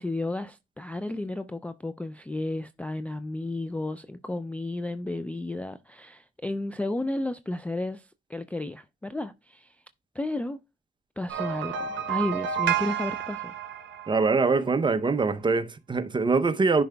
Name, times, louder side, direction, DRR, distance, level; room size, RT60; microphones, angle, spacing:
voice 1, 0.0-9.8 10.1-10.6 11.2-13.5, left 2 dB, 5° left, 0.3 m, -33 dB
sound 1, 11.3-14.6, right 9 dB, 65° right, 0.9 m, -30 dB
voice 2, 14.1-16.8, right 4 dB, 25° right, 0.7 m, -23 dB
10.5 x 4.5 x 2.2 m
cardioid pair, 90°, 20 cm